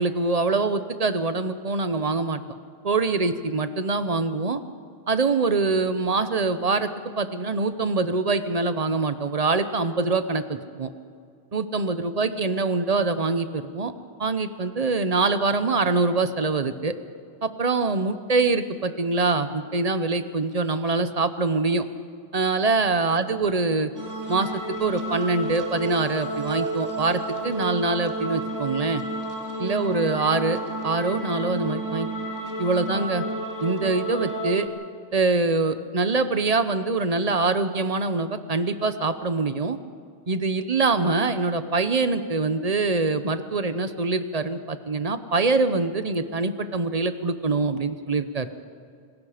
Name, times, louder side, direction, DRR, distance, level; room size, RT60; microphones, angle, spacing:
voice 1, 0.0-2.4 2.8-4.6 5.1-6.9 7.2-10.9 11.5-13.9 14.2-17.0 17.4-21.9 22.3-23.9 24.3-29.0 29.6-32.1 32.6-33.2 33.6-34.7 35.1-39.8 40.3-48.5, right 3 dB, 40° right, 11 dB, 0.9 m, -24 dB
sound 1, 23.9-34.7, right 2 dB, 20° right, 1.8 m, -31 dB
27.0 x 19.5 x 5.0 m, 2.3 s
omnidirectional pair, 1.1 m